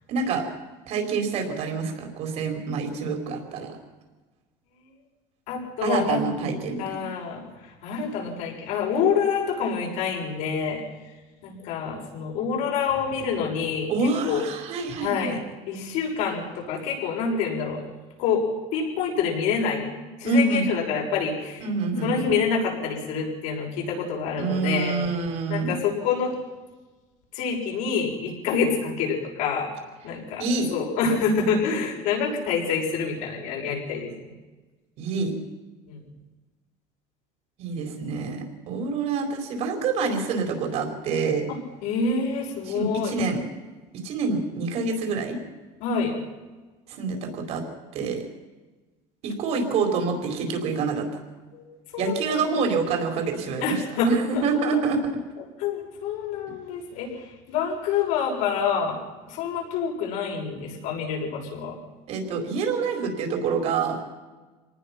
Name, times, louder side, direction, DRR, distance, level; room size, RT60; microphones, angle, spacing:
voice 1, 0.1-0.5 0.9-3.8 5.8-7.1 13.9-15.4 20.2-20.7 21.6-22.3 24.4-25.8 30.4-30.7 35.0-35.3 37.6-41.5 42.7-43.4 44.0-45.4 46.9-47.6 47.9-48.2 49.2-51.1 52.0-55.0 62.1-64.0, right 4 dB, 55° right, 4 dB, 4.4 m, -26 dB
voice 2, 5.5-6.2 6.8-10.8 11.4-14.4 15.0-15.4 15.7-17.8 18.2-18.4 18.7-19.9 20.2-21.6 22.0-25.0 25.5-26.3 27.3-29.7 30.0-30.4 30.7-34.1 35.9-36.0 41.5-43.1 45.8-46.1 51.5-51.7 51.9-52.6 53.6-54.4 54.7-54.8 55.6-59.0 59.3-61.8, left 5 dB, 75° left, 0 dB, 6.6 m, -27 dB
25.5 x 19.0 x 5.9 m, 1.3 s
cardioid pair, 155°, 13 cm